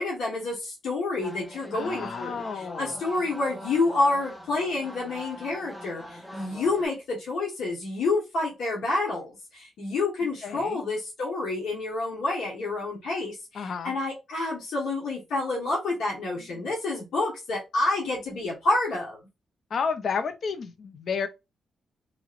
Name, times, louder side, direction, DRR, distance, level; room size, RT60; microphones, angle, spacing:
voice 1, 0.0-19.2, left 2 dB, 85° left, 1.1 m, -28 dB
sound 1, 1.2-6.9, equal, 5° left, 0.5 m, -43 dB
voice 2, 1.7-3.0 10.4-10.8 13.5-13.9 16.6-16.7 19.7-21.3, left 5 dB, 55° left, 0.5 m, -31 dB
2.9 x 2.9 x 2.4 m
wide cardioid pair, 135°, 0 cm